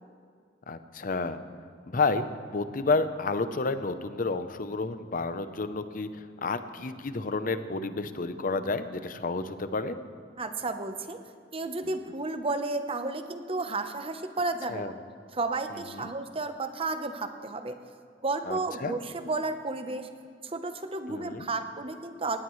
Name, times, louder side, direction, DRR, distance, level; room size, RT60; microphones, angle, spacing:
voice 1, 0.7-1.4 1.9-2.3 2.5-6.1 6.4-10.0 14.7-14.9 15.9-16.1 18.5-18.9 21.1-21.5, left 3 dB, 45° left, 11 dB, 0.7 m, -30 dB
voice 2, 10.4-11.2 11.5-14.9 15.3-17.8 18.2-20.1 20.4-22.4, right 3 dB, 30° right, 8 dB, 0.9 m, -32 dB
18.5 x 17.0 x 3.2 m, 2.3 s
head